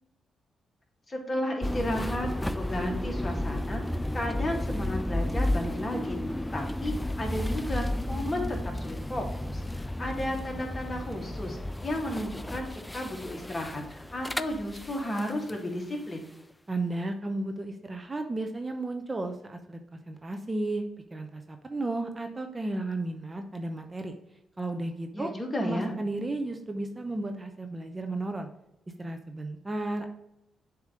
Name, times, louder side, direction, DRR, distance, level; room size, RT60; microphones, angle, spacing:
voice 1, 1.1-16.2 25.1-25.9, left 1 dB, 30° left, 1 dB, 2.0 m, -33 dB
sound 1, 1.6-15.6, left 1 dB, 10° left, 0.4 m, -33 dB
voice 2, 16.7-19.8 20.1-24.2 24.6-25.3 25.6-28.5 29.0-30.1, right 2 dB, 30° right, 5 dB, 0.8 m, -33 dB
7.3 x 3.0 x 5.1 m, 0.83 s
supercardioid pair, 55°, 0 cm